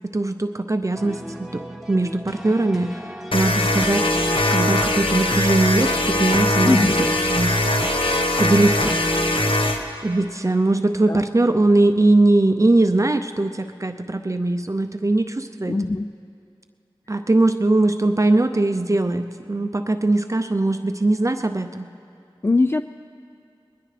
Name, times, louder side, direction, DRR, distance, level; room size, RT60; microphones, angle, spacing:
voice 1, 0.1-1.6 1.9-3.0 3.3-6.9 7.3-7.5 8.4-9.0 10.0-15.7 17.1-21.9, right 2 dB, 35° right, 8 dB, 0.6 m, -20 dB
sound 1, 0.9-9.6, equal, ahead, 1.3 m, -38 dB
sound 2, 3.3-9.8, left 1 dB, 75° left, 1.2 m, -21 dB
voice 2, 6.6-7.0 11.1-11.2 15.7-16.1 22.4-22.8, left 3 dB, 25° left, 9 dB, 0.3 m, -20 dB
20.5 x 20.5 x 3.3 m, 2.5 s
wide cardioid pair, 50°, 9 cm